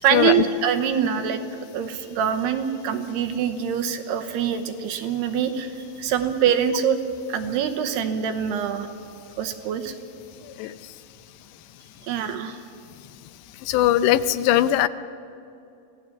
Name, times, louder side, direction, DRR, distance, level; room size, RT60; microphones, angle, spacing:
voice 1, 0.0-1.4 1.7-7.0 7.3-8.9 9.4-9.9 12.0-12.6, right 8 dB, 75° right, 7 dB, 2.8 m, -24 dB
voice 2, 13.6-14.9, left 13 dB, 80° left, 13 dB, 2.8 m, -20 dB
26.5 x 18.0 x 7.3 m, 2.7 s
omnidirectional pair, 5.2 m